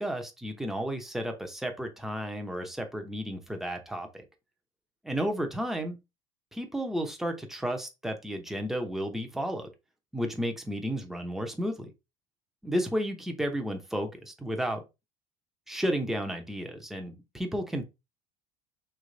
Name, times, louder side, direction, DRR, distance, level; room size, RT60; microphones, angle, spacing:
voice 1, 0.0-4.1 5.0-6.0 6.5-9.7 10.1-11.9 12.6-14.8 15.7-17.8, equal, ahead, 0.8 m, -32 dB
3.3 x 3.0 x 3.9 m
cardioid pair, 130°, 16 cm